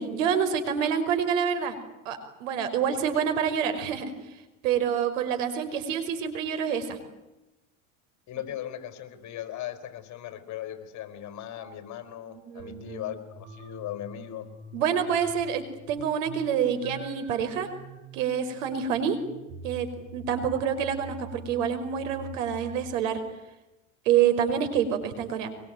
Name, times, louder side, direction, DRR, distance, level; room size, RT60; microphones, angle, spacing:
voice 1, 0.0-1.8 2.1-4.1 4.6-7.0 12.5-13.0 14.7-17.7 18.1-19.2 19.6-23.2 24.1-25.5, right 8 dB, 80° right, 8 dB, 5.4 m, -27 dB
voice 2, 8.3-14.5, left 11 dB, 45° left, 10 dB, 4.4 m, -38 dB
sound 1, 12.6-22.9, right 3 dB, 50° right, 5.7 m, -45 dB
24.0 x 22.5 x 9.2 m, 1.0 s
supercardioid pair, 115°, 38 cm